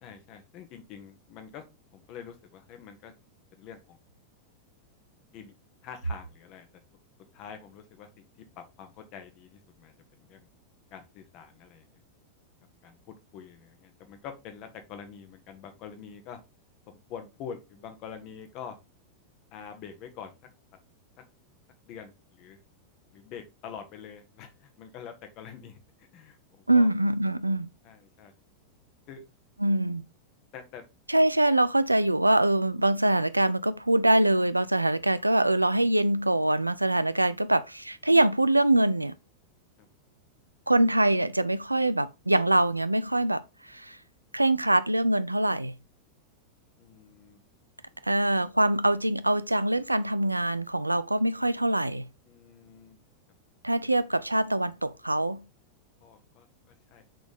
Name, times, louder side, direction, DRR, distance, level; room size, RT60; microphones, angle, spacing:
voice 1, 0.0-1.6 1.9-3.1 3.5-4.0 5.3-5.5 5.8-6.7 7.3-8.2 8.6-9.9 10.3-10.4 10.9-11.9 12.8-16.4 16.9-18.7 19.5-20.3 21.9-22.6 23.1-26.9 27.8-28.3 29.1-29.2 30.5-30.8 39.8-39.9 46.8-47.4 52.3-53.0 56.0-56.5 56.9-57.0, left 7 dB, 40° left, 1.5 m, -45 dB
voice 2, 26.7-27.7 29.6-30.0 31.1-39.1 40.7-43.4 43.7-44.0 44.3-45.8 48.0-52.1 53.6-55.4, right 1 dB, 85° right, 0.4 m, -24 dB
6.5 x 4.0 x 4.0 m
figure-of-eight pair, 90°, 0 cm